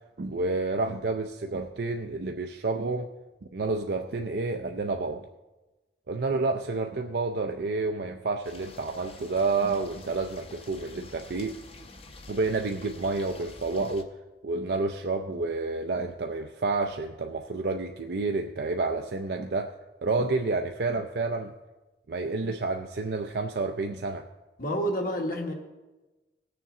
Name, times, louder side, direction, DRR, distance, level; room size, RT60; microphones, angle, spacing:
voice 1, 0.2-3.1 3.5-5.3 6.1-11.5 12.3-14.1 14.4-19.7 20.0-21.5 22.1-24.3, right 3 dB, 60° right, 4 dB, 0.5 m, -29 dB
sound 1, 8.4-14.0, left 2 dB, 30° left, 0.8 m, -48 dB
voice 2, 24.6-25.5, equal, 50° left, 3 dB, 1.4 m, -29 dB
19.0 x 6.8 x 3.7 m, 1.1 s
head